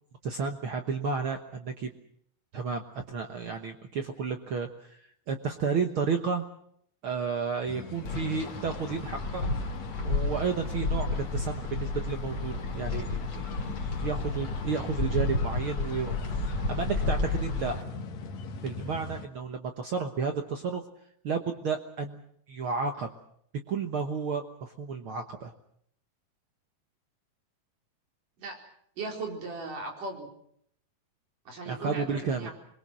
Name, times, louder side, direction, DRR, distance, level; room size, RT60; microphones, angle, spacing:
voice 1, 0.2-1.9 2.5-5.0 5.3-6.4 7.0-9.5 10.0-17.8 18.6-20.8 21.2-22.2 22.5-23.1 23.7-25.5 31.6-32.5, right 5 dB, 90° right, 5 dB, 1.1 m, -32 dB
sound 1, 7.6-19.3, left 4 dB, 55° left, 2.6 m, -41 dB
Wind, 8.1-17.8, left 3 dB, 30° left, 2.8 m, -32 dB
voice 2, 29.0-30.3 31.5-32.5, right 3 dB, 60° right, 1 dB, 5.7 m, -37 dB
26.5 x 22.0 x 6.2 m, 0.69 s
omnidirectional pair, 4.3 m